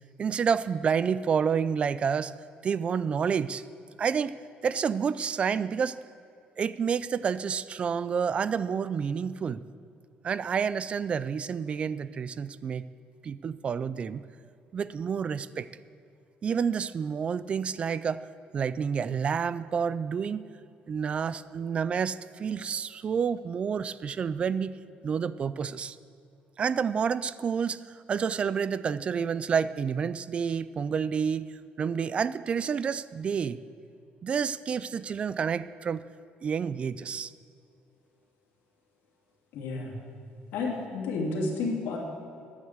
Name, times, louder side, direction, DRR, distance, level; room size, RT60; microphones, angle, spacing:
voice 1, 0.2-2.3 2.6-3.6 4.0-4.4 4.6-6.0 6.6-9.6 10.2-12.9 13.2-14.2 14.7-15.7 16.4-18.2 18.5-20.4 20.9-24.7 25.0-26.0 26.6-31.5 31.8-33.6 34.2-36.1 36.4-37.3, right 6 dB, 35° right, 16 dB, 0.3 m, -29 dB
voice 2, 39.5-39.9 40.5-42.0, left 3 dB, 85° left, -1 dB, 2.7 m, -31 dB
10.5 x 8.6 x 8.1 m, 2.5 s
cardioid pair, 145°, 3 cm